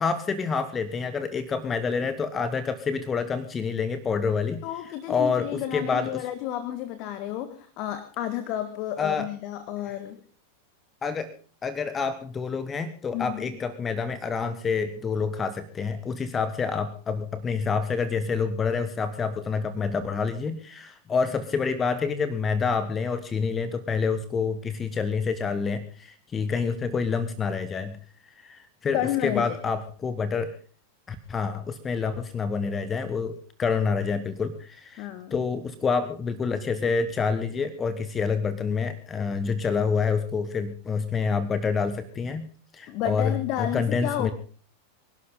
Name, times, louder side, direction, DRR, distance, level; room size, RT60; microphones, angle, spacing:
voice 1, 0.0-4.6 5.1-6.2 9.0-9.3 11.0-11.3 11.6-28.0 28.4-30.5 31.1-42.5 42.7-44.3, left 5 dB, 20° left, 12 dB, 1.5 m, -27 dB
voice 2, 4.6-10.2 13.1-13.5 28.9-29.6 35.0-35.4 42.9-44.3, left 11 dB, 40° left, 11 dB, 1.8 m, -31 dB
25.5 x 12.0 x 3.9 m, 0.43 s
figure-of-eight pair, 90°, 0 cm